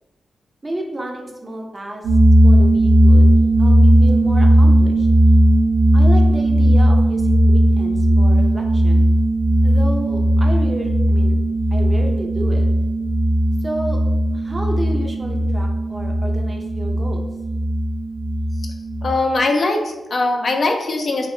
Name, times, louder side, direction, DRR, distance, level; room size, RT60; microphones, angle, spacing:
voice 1, 0.6-2.0 2.4-3.3 3.6-5.1 5.9-9.1 9.6-11.3 11.7-12.7 13.6-14.0 14.3-17.3, right 1 dB, 35° right, 2 dB, 0.5 m, -31 dB
sound 1, 2.0-19.1, right 1 dB, 85° right, 0.4 m, -16 dB
voice 2, 19.0-21.3, left 2 dB, 60° left, 3 dB, 0.4 m, -20 dB
2.3 x 2.1 x 3.0 m, 1.1 s
cardioid pair, 50°, 0 cm